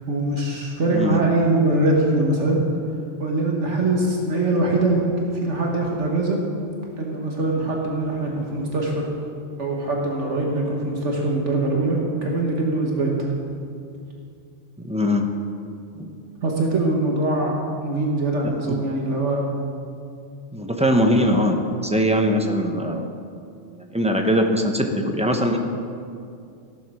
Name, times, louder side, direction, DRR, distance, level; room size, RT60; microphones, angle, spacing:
voice 1, 0.1-2.6 3.2-6.4 7.0-9.0 9.6-13.1 16.4-19.4, right 2 dB, 70° right, -1 dB, 1.7 m, -22 dB
voice 2, 0.9-1.3 14.8-15.3 16.0-16.1 18.7-18.9 20.5-23.1 23.7-25.6, equal, 5° right, 3 dB, 0.8 m, -21 dB
15.0 x 7.1 x 6.3 m, 2.4 s
omnidirectional pair, 1.2 m